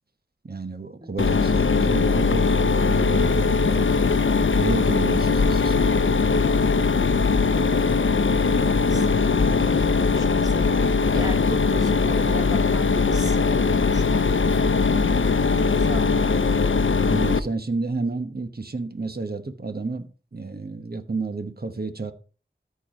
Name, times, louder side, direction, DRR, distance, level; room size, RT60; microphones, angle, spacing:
voice 1, 0.4-3.8 4.5-6.2 8.7-9.1 17.0-22.1, right 3 dB, 50° right, 1.1 m, -31 dB
voice 2, 1.0-1.6 7.5-16.4, equal, 20° right, 2.5 m, -39 dB
Mechanisms, 1.2-17.4, left 4 dB, 85° left, 0.6 m, -20 dB
13.5 x 4.7 x 5.1 m
wide cardioid pair, 40°, 20 cm